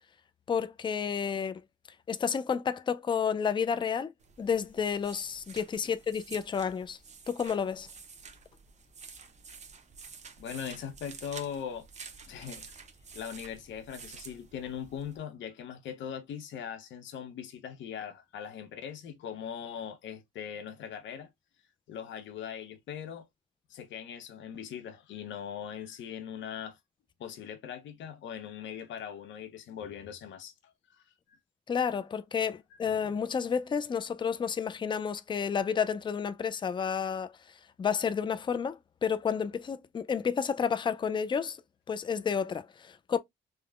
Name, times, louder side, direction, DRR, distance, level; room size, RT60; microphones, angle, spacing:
voice 1, 0.5-1.6 2.1-4.1 4.4-7.0 7.3-7.9 31.7-37.3 37.8-41.6 41.9-43.2, left 6 dB, 25° left, 0.4 m, -30 dB
sound 1, 4.2-15.2, right 5 dB, 35° right, 0.6 m, -50 dB
voice 2, 10.4-11.9 12.3-12.8 13.1-21.3 21.9-23.3 23.7-26.8 27.2-31.4, left 8 dB, 70° left, 0.7 m, -40 dB
3.4 x 2.1 x 2.3 m
cardioid pair, 90°, 20 cm